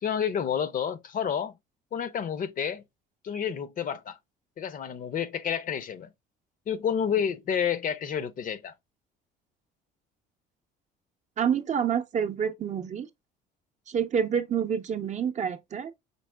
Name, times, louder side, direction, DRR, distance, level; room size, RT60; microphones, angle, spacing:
voice 1, 0.0-1.5 1.9-2.8 3.2-4.2 4.6-6.1 6.7-8.7, left 8 dB, 45° left, 0.6 m, -29 dB
voice 2, 11.4-13.1 13.9-15.9, right 7 dB, 35° right, 0.6 m, -28 dB
5.3 x 4.1 x 2.2 m
supercardioid pair, 100°, 20 cm